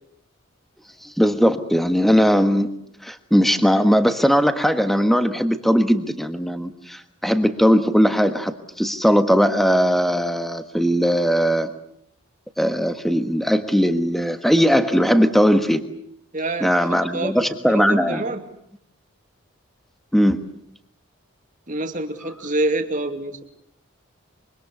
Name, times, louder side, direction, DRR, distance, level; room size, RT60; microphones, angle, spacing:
voice 1, 1.0-2.7 3.0-11.7 12.6-15.8 16.6-18.2 20.1-20.5, equal, ahead, 8 dB, 1.4 m, -19 dB
voice 2, 16.3-16.7 17.1-18.4 21.7-23.4, right 2 dB, 35° right, 6 dB, 2.4 m, -26 dB
25.0 x 24.0 x 8.3 m, 0.73 s
head